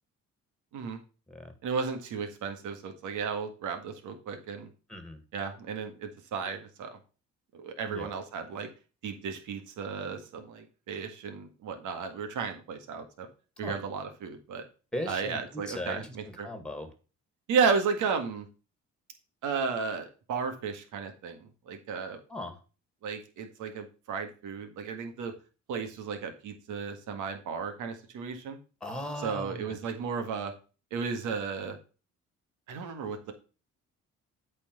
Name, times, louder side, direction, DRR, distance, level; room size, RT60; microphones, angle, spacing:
voice 1, 1.6-4.7 5.3-7.0 7.5-8.7 9.0-13.3 13.6-14.6 15.1-16.5 17.5-18.5 19.4-22.2 23.0-25.3 25.7-28.6 29.2-30.5 30.9-31.8 32.7-33.3, right 5 dB, 85° right, 6 dB, 1.8 m, -33 dB
voice 2, 4.9-5.2 7.9-8.1 13.6-13.8 14.9-16.2 16.4-16.9 22.3-22.6 28.8-29.8, left 1 dB, 5° left, 7 dB, 2.3 m, -38 dB
8.5 x 4.5 x 5.6 m, 0.34 s
cardioid pair, 90°, 30 cm